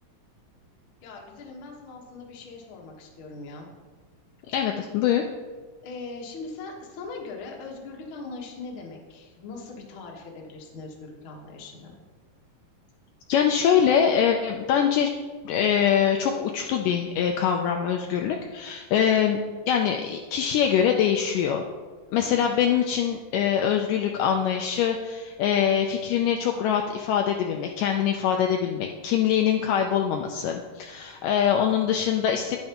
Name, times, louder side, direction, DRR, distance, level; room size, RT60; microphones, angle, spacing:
voice 1, 1.0-3.7 5.8-12.0 22.2-22.5, left 3 dB, 55° left, -1 dB, 1.5 m, -40 dB
voice 2, 4.5-5.2 13.3-15.1 15.5-19.4 19.7-21.6 22.1-32.6, left 8 dB, 80° left, 3 dB, 2.0 m, -23 dB
10.5 x 8.8 x 2.9 m, 1.4 s
omnidirectional pair, 4.1 m